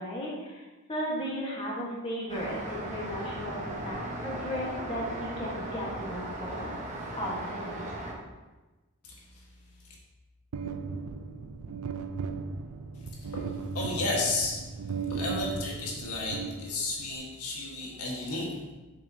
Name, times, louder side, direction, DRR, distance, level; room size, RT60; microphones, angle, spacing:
voice 1, 0.0-6.7 7.2-7.8, equal, 25° left, -5 dB, 1.3 m, -35 dB
Traffic noise roadway noise, 2.3-8.1, right 1 dB, 35° right, 1.0 m, -37 dB
voice 2, 9.0-9.5 9.8-9.9 12.9-18.7, left 2 dB, 90° left, -2 dB, 1.5 m, -34 dB
sound 1, 10.5-17.1, right 5 dB, 70° right, 0.4 m, -36 dB
7.0 x 5.7 x 2.8 m, 1.2 s
head